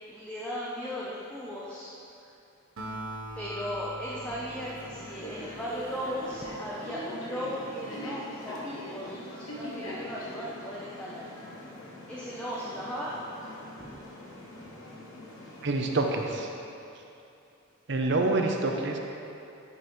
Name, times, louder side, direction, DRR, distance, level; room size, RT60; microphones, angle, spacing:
voice 1, 0.1-1.9 3.4-11.3 12.1-13.2 13.8-13.9, equal, 5° left, -7 dB, 0.7 m, -37 dB
Acoustic guitar, 2.8-6.4, right 1 dB, 85° right, 1.0 m, -42 dB
sound 1, 4.1-16.4, left 1 dB, 80° left, 1.2 m, -42 dB
voice 2, 15.6-16.5 17.9-19.0, right 2 dB, 55° right, 3 dB, 0.7 m, -27 dB
10.5 x 5.4 x 3.1 m, 2.7 s
head